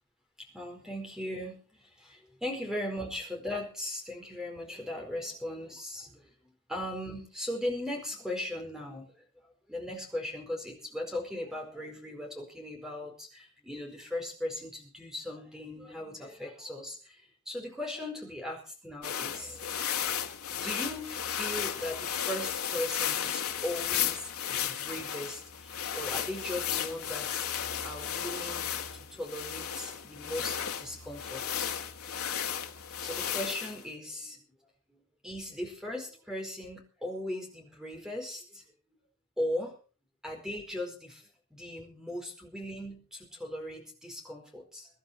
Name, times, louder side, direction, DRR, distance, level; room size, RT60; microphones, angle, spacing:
voice 1, 0.4-9.2 9.7-20.0 20.5-27.5 27.8-31.7 32.0-32.2 33.0-34.4 34.9-38.6 39.4-39.8 40.2-44.9, left 1 dB, 5° right, 2 dB, 4.6 m, -38 dB
sound 1, 19.0-33.8, left 9 dB, 85° left, 1.7 m, -34 dB
23.0 x 11.5 x 4.3 m, 0.37 s
head